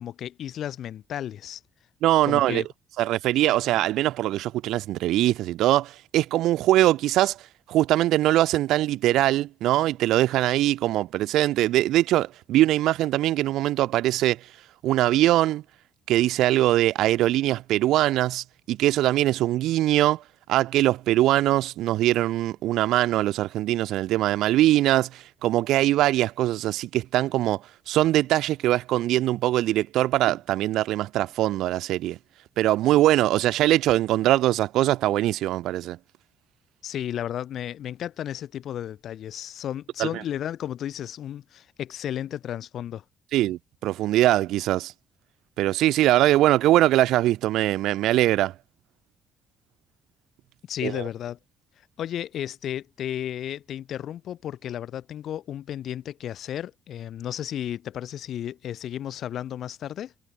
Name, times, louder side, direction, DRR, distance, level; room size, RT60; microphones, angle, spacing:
voice 1, 0.0-1.6 2.3-2.7 36.8-43.0 50.7-51.4 52.0-60.1, left 10 dB, 50° left, 3.9 m, -33 dB
voice 2, 2.0-2.6 3.0-7.4 7.7-14.5 14.8-15.6 16.1-20.2 20.5-32.2 32.6-36.0 40.0-40.2 43.3-44.9 45.6-48.5 50.8-51.0, right 14 dB, 80° right, 6.3 m, -22 dB
cardioid pair, 175°, 0 cm